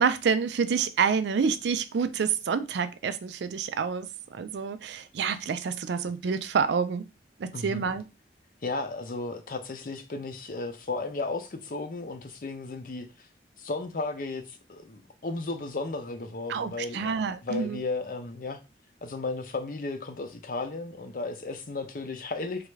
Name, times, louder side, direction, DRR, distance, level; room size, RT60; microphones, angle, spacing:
voice 1, 0.0-4.1 4.3-7.0 7.4-8.0 16.5-17.8, right 6 dB, 70° right, 0.4 m, -28 dB
voice 2, 7.5-7.9 8.6-13.3 13.6-18.6 19.0-22.7, left 3 dB, 50° left, 0.5 m, -34 dB
3.2 x 2.4 x 3.1 m
head